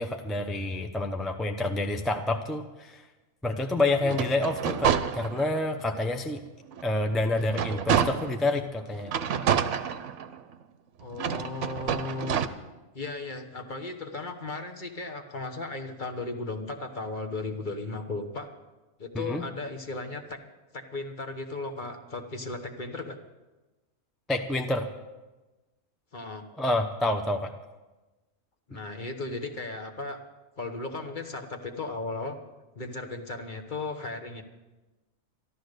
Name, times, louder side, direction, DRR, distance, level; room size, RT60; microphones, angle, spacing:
voice 1, 0.0-3.1 3.4-6.4 6.8-9.1 19.1-19.4 24.3-24.9 26.6-27.5 28.7-28.8, left 2 dB, ahead, 4 dB, 0.6 m, -28 dB
sound 1, 4.0-5.7 6.2-6.3 6.7-8.5 9.1-10.5 11.1-12.5, right 8 dB, 65° right, 1.0 m, -28 dB
voice 2, 11.0-12.4 12.9-18.5 19.0-20.4 20.7-23.2 26.1-26.4 28.7-30.2 30.6-32.4 32.7-34.4, left 3 dB, 40° left, 5 dB, 1.3 m, -36 dB
13.0 x 12.5 x 6.6 m, 1.1 s
omnidirectional pair, 1.4 m